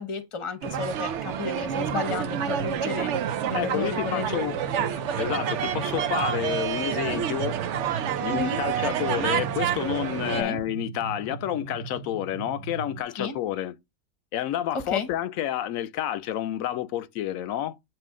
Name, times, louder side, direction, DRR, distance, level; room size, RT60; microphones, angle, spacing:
voice 1, 0.0-4.4 8.3-8.6 10.4-10.6 13.2-13.3 14.7-15.1, left 5 dB, 25° left, 0.8 m, -32 dB
sound 1, 0.6-10.4, right 9 dB, 65° right, 0.9 m, -28 dB
sound 2, 2.0-13.0, right 5 dB, 30° right, 0.8 m, -39 dB
voice 2, 3.5-7.6 8.2-13.7 14.3-17.8, left 12 dB, 85° left, 1.0 m, -30 dB
8.7 x 3.0 x 3.7 m
omnidirectional pair, 1.4 m